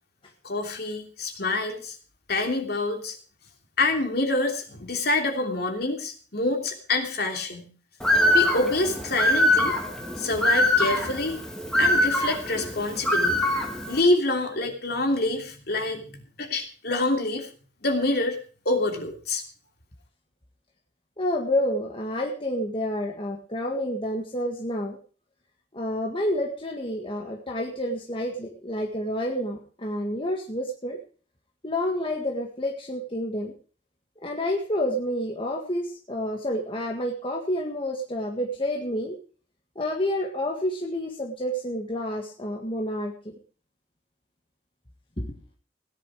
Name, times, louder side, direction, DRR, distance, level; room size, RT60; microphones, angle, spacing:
voice 1, 0.4-2.0 2.3-3.1 3.8-7.7 8.3-9.8 10.2-11.4 11.8-13.4 13.9-17.5 17.8-18.4 18.6-19.4, left 2 dB, 55° left, 3 dB, 3.1 m, -26 dB
Bird, 8.0-14.0, left 1 dB, 5° left, 2.2 m, -23 dB
voice 2, 21.2-25.0 25.7-31.0 31.6-33.5 34.2-39.2 39.8-43.1 45.2-45.3, left 1 dB, 30° left, 1 dB, 1.8 m, -29 dB
17.0 x 10.0 x 4.8 m, 0.39 s
head